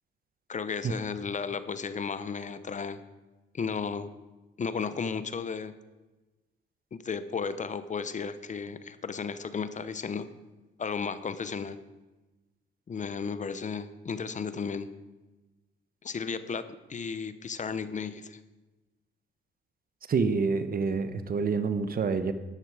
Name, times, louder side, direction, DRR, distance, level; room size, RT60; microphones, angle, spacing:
voice 1, 0.5-3.0 3.5-4.1 4.6-5.7 6.9-10.3 10.8-11.8 12.9-14.9 16.0-18.4, left 5 dB, 40° left, 12 dB, 0.8 m, -34 dB
voice 2, 20.1-22.3, right 5 dB, 50° right, 11 dB, 1.1 m, -27 dB
13.5 x 10.5 x 4.9 m, 1.1 s
cardioid pair, 90°, 20 cm